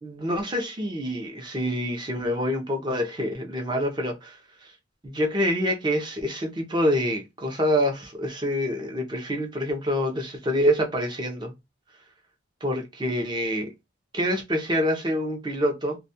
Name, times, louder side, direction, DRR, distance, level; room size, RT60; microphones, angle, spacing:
voice 1, 0.0-4.7 5.0-11.5 12.6-13.7 14.1-16.0, equal, 20° right, 0.5 m, -26 dB
2.3 x 2.1 x 2.6 m
head